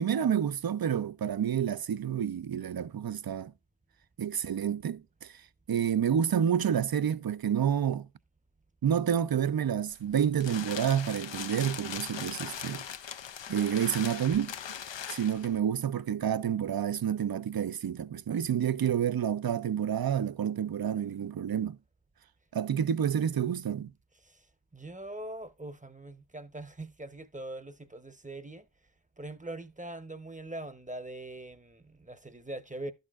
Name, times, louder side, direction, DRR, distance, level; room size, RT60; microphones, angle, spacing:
voice 1, 0.0-3.5 4.2-5.3 5.7-8.1 8.8-12.8 13.5-14.6 15.1-21.8 22.5-23.9, right 9 dB, 55° right, 0.6 m, -29 dB
sound 1, 9.9-15.6, left 8 dB, 85° left, 0.6 m, -40 dB
voice 2, 24.7-28.7 29.2-32.9, right 1 dB, 15° right, 0.8 m, -42 dB
11.5 x 6.5 x 2.4 m
wide cardioid pair, 45°, 43 cm